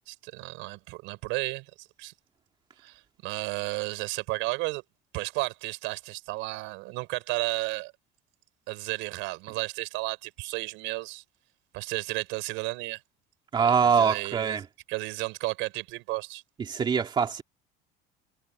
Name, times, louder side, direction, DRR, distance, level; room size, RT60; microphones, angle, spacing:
voice 1, 0.0-2.1 2.8-4.8 5.1-7.9 8.7-11.2 11.7-13.0 13.6-16.4, right 23 dB, 65° right, 5.9 m, -33 dB
voice 2, 13.5-14.6 16.7-17.4, right 6 dB, 20° right, 2.5 m, -23 dB
cardioid pair, 165°, 21 cm